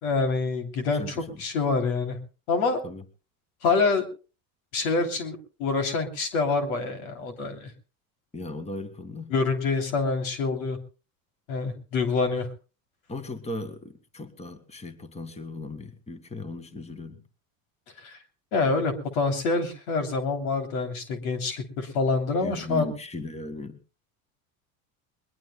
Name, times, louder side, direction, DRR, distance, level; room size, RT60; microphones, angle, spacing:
voice 1, 0.0-2.2 2.5-2.8 3.6-4.1 4.7-7.7 9.3-10.8 11.5-12.5 18.0-18.2 18.5-22.9, left 4 dB, 85° left, 6 dB, 3.0 m, -26 dB
voice 2, 0.9-1.2 2.8-3.0 8.3-9.3 13.1-17.2 22.4-23.8, left 2 dB, 15° left, 11 dB, 1.7 m, -37 dB
21.5 x 21.5 x 2.2 m, 0.34 s
supercardioid pair, 90°, 41 cm